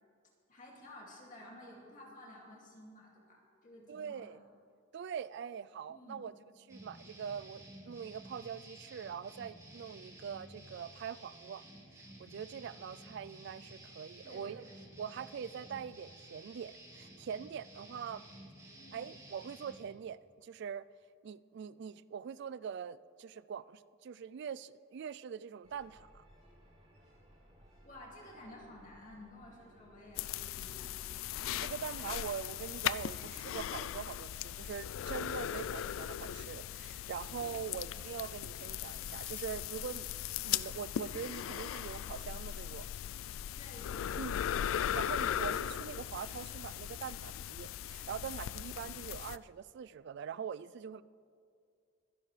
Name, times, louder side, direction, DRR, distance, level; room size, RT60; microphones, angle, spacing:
voice 1, 0.5-4.4 5.9-6.2 14.2-14.8 18.7-19.1 27.8-30.9 43.6-44.2, left 1 dB, 40° left, 2.4 m, -53 dB
voice 2, 3.9-4.4 4.9-6.3 6.7-11.6 12.2-14.7 15.0-18.2 18.9-20.9 21.2-26.2 31.6-40.2 40.4-42.9 44.2-44.4 44.9-51.0, right 7 dB, 60° right, 0.3 m, -43 dB
sound 1, 6.7-19.8, right 1 dB, 15° right, 2.7 m, -53 dB
sound 2, 25.6-32.6, equal, 35° right, 3.4 m, -61 dB
sound 3, 30.2-49.4, left 10 dB, 85° left, 0.3 m, -38 dB
23.0 x 10.5 x 3.3 m
head